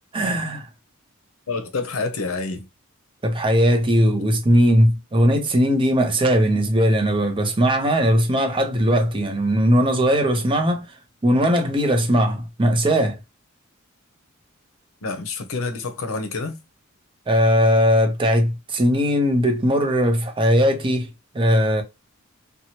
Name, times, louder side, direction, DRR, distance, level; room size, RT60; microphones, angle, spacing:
voice 1, 0.1-0.7 3.2-10.8 11.2-13.2 17.3-21.1 21.3-21.8, equal, 25° right, 0.6 m, -19 dB
voice 2, 1.5-2.7 15.0-16.6, left 3 dB, 85° left, 0.6 m, -28 dB
2.8 x 2.2 x 2.8 m
head